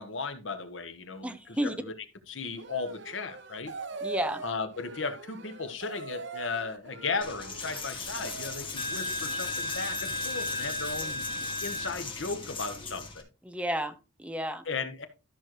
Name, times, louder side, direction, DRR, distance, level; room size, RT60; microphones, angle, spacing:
voice 1, 0.0-1.9 2.3-3.7 4.4-11.3 11.6-13.2 14.7-15.1, left 4 dB, 80° left, 1.2 m, -36 dB
voice 2, 1.2-1.7 4.0-4.4 13.5-14.6, right 1 dB, 5° right, 0.8 m, -32 dB
sound 1, 2.6-8.7, right 4 dB, 65° right, 0.9 m, -42 dB
Coin (dropping), 7.2-13.2, left 2 dB, 30° left, 2.1 m, -35 dB
13.0 x 6.3 x 3.0 m
head